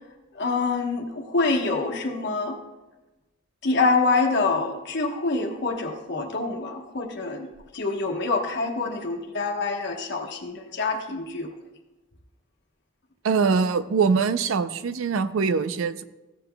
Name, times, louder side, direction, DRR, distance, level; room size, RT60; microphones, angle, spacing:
voice 1, 0.3-2.6 3.6-7.5 7.7-11.5, left 3 dB, 55° left, 2 dB, 1.1 m, -26 dB
voice 2, 13.2-16.0, right 5 dB, 70° right, 13 dB, 0.4 m, -23 dB
15.0 x 7.8 x 2.2 m, 1.1 s
head